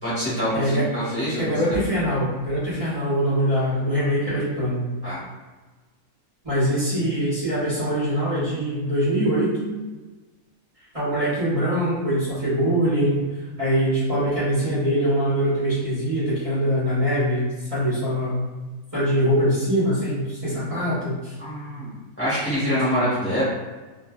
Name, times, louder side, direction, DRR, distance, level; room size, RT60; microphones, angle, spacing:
voice 1, 0.0-1.7 4.2-4.4 5.0-5.2 21.4-23.4, equal, 10° left, -12 dB, 1.0 m, -26 dB
voice 2, 1.4-4.8 6.4-9.7 10.9-13.2 13.6-18.5 18.9-21.3, equal, 25° right, -13 dB, 1.0 m, -23 dB
2.7 x 2.5 x 2.2 m, 1.3 s
omnidirectional pair, 1.6 m